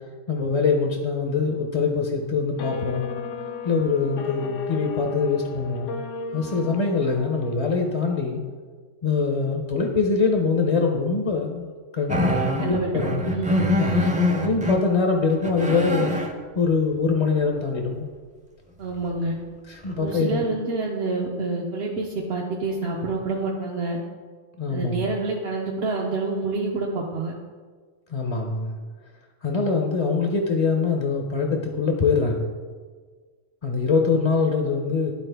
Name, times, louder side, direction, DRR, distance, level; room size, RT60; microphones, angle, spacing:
voice 1, 0.3-3.1 3.6-5.9 6.3-8.4 9.0-13.2 14.4-16.1 16.6-18.1 19.7-20.4 24.6-25.0 28.1-28.8 29.4-32.5 33.6-35.1, left 4 dB, 40° left, 2 dB, 0.5 m, -23 dB
sound 1, 2.6-8.1, left 4 dB, 75° left, 0.9 m, -35 dB
sound 2, 12.1-14.8 15.3-16.3 19.2-19.3 19.8-20.1, left 1 dB, 10° right, 0.5 m, -24 dB
voice 2, 12.6-13.6 18.8-19.3 20.0-24.0 24.7-27.3, right 3 dB, 60° right, -3 dB, 1.0 m, -27 dB
12.0 x 4.1 x 3.4 m, 1.5 s
omnidirectional pair, 1.3 m